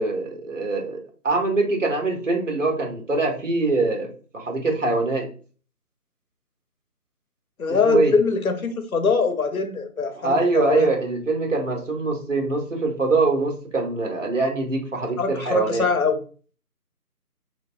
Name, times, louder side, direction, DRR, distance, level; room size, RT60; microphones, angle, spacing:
voice 1, 0.0-5.3 7.8-8.1 10.2-15.8, right 3 dB, 55° right, 2 dB, 0.8 m, -23 dB
voice 2, 7.6-10.9 15.2-16.2, left 4 dB, 65° left, 7 dB, 0.6 m, -23 dB
3.3 x 2.0 x 2.4 m, 0.40 s
figure-of-eight pair, 165°, 46 cm